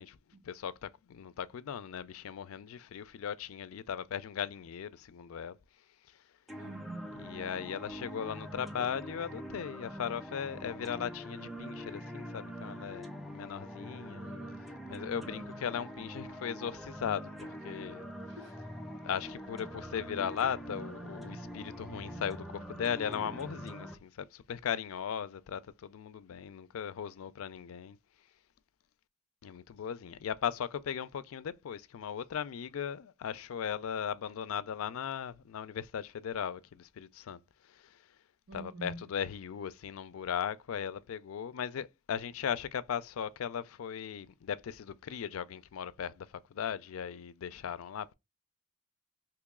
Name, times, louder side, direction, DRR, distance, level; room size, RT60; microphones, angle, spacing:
voice 1, 0.4-5.6 6.1-6.2 7.1-13.1 13.3-14.3 14.9-18.1 19.0-28.0 29.4-38.0 38.5-48.1, left 8 dB, 85° left, 0.4 m, -38 dB
sound 1, 6.5-23.9, equal, ahead, 0.5 m, -44 dB
voice 2, 6.6-7.2 14.2-15.4 18.2-18.6 38.5-39.1, right 2 dB, 60° right, 1.1 m, -47 dB
3.0 x 2.9 x 3.6 m
head